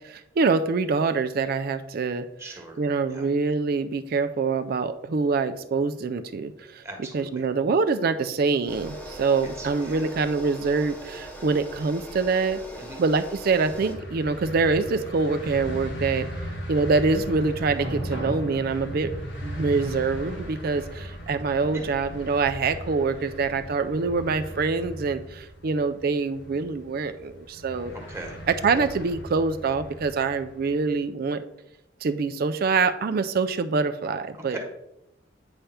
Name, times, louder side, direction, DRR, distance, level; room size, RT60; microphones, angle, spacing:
voice 1, 0.0-2.3 2.8-6.8 7.1-12.6 13.0-16.3 16.7-19.1 19.4-27.9 28.5-31.4 32.0-34.6, right 4 dB, 50° right, 11 dB, 0.4 m, -25 dB
voice 2, 2.4-2.8 3.1-3.3 6.8-7.4 9.4-10.1 12.8-13.0 21.7-21.9 27.9-28.4 34.3-34.6, right 2 dB, 15° right, 1 dB, 1.3 m, -40 dB
sound 1, 8.7-14.0, equal, 10° left, 0.9 m, -41 dB
sound 2, 13.6-30.9, equal, 75° left, 1.7 m, -37 dB
8.9 x 3.4 x 5.6 m, 0.85 s
head